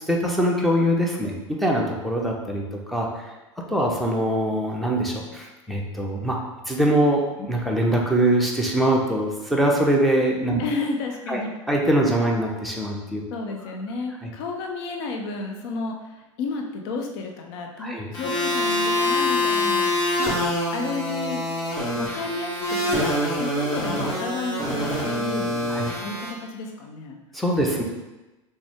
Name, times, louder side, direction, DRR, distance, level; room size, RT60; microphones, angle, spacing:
voice 1, 0.0-1.3 1.6-3.3 3.7-6.4 6.7-10.6 11.3-11.4 11.7-13.2 14.2-14.3 17.8-18.1 25.7-25.9 27.3-27.8, right 1 dB, ahead, -1 dB, 0.8 m, -23 dB
voice 2, 10.6-11.5 13.3-16.0 16.4-20.4 20.7-21.4 22.0-23.0 23.3-27.2 27.6-27.8, left 3 dB, 55° left, 3 dB, 0.7 m, -32 dB
sound 1, 18.1-26.3, left 1 dB, 25° left, 1.4 m, -25 dB
6.0 x 2.2 x 3.6 m, 1.1 s
figure-of-eight pair, 80°, 16 cm